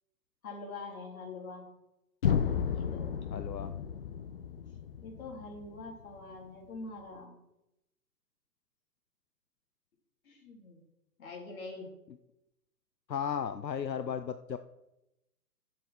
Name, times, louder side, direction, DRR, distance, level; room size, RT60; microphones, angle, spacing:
voice 1, 0.4-1.6 2.7-3.1 5.0-7.4 10.2-10.8 11.2-11.9, left 3 dB, 55° left, -1 dB, 4.3 m, -44 dB
sound 1, 2.2-6.2, left 7 dB, 35° left, 0.5 m, -33 dB
voice 2, 3.3-3.7 13.1-14.6, left 7 dB, 90° left, 10 dB, 0.7 m, -35 dB
14.0 x 7.6 x 4.6 m, 0.90 s
figure-of-eight pair, 130°, 50 cm